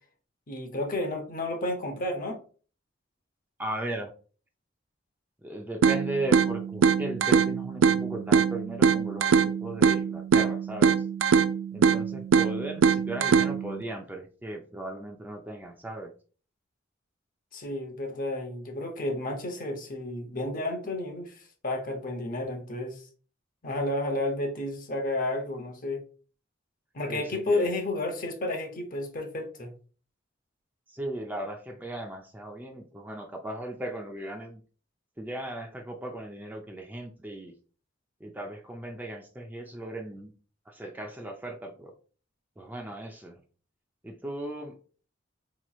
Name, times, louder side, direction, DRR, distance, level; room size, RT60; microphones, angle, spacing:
voice 1, 0.5-2.4 17.5-23.0 23.6-26.0 26.9-29.7, left 2 dB, 45° left, 5 dB, 0.8 m, -31 dB
voice 2, 3.6-4.1 5.4-11.1 11.7-16.1 27.1-27.7 30.9-34.6 35.2-37.5 38.2-40.3 40.7-41.9 42.6-43.4 44.0-44.8, right 1 dB, 10° right, 2 dB, 0.4 m, -37 dB
sound 1, 5.8-13.8, right 6 dB, 85° right, 0.3 m, -23 dB
4.2 x 3.0 x 2.3 m, 0.39 s
head